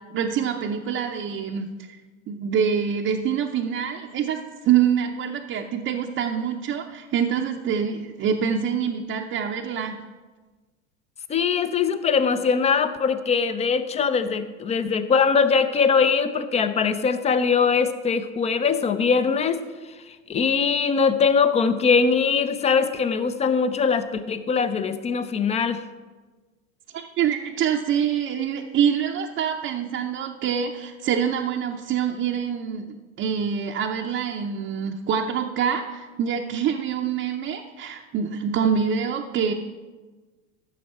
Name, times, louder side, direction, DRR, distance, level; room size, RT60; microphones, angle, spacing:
voice 1, 0.1-2.0 2.3-10.0 26.9-32.9 33.2-39.5, right 8 dB, 30° right, 1 dB, 0.7 m, -25 dB
voice 2, 11.3-19.6 20.1-25.8, left 5 dB, 15° left, 12 dB, 0.4 m, -22 dB
14.0 x 6.3 x 4.3 m, 1.3 s
hypercardioid pair, 100°, 41 cm